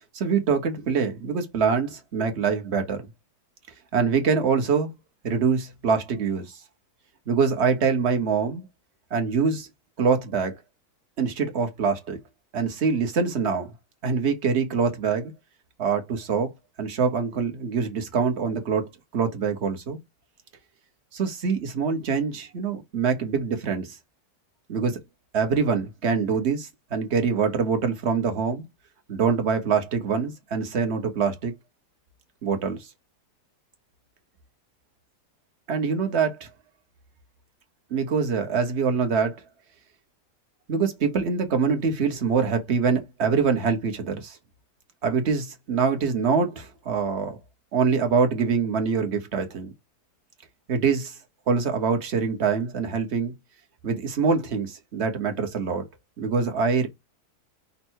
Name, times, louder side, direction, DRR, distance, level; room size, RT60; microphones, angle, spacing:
voice 1, 0.1-3.1 3.9-4.9 5.2-6.5 7.3-8.6 9.1-9.7 10.0-10.6 11.2-12.2 12.5-13.7 14.0-15.3 15.8-16.5 16.8-20.0 21.1-24.0 24.7-25.0 25.3-28.6 29.1-31.5 32.4-32.8 35.7-36.5 37.9-39.4 40.7-44.4 45.0-47.4 47.7-49.7 50.7-51.2 51.5-53.3 53.8-55.8 56.2-56.9, right 5 dB, 45° right, 1.2 m, -24 dB
5.4 x 2.1 x 4.5 m
omnidirectional pair, 1.7 m